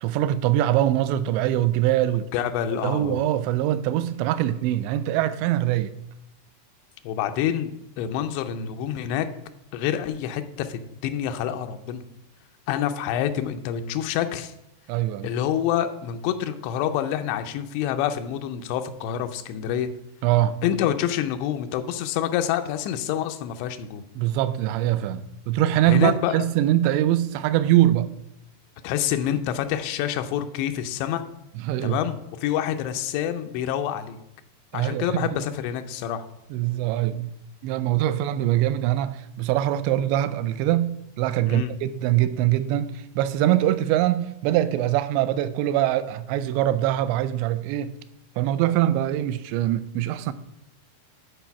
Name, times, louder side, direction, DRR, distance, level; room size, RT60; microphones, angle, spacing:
voice 1, 0.0-2.3 2.7-5.9 14.9-15.3 20.2-20.6 24.2-28.1 31.6-32.0 34.7-35.4 36.5-37.3 37.6-48.0 48.4-50.3, right 13 dB, 90° right, 2.8 m, -23 dB
voice 2, 2.3-3.2 7.0-7.7 8.0-9.3 9.7-12.0 12.7-14.5 15.2-19.9 20.6-24.0 25.8-26.4 28.8-31.2 31.8-34.2 34.7-36.3 41.5-41.7, left 10 dB, 90° left, 2.9 m, -27 dB
10.5 x 4.2 x 5.7 m
omnidirectional pair, 4.9 m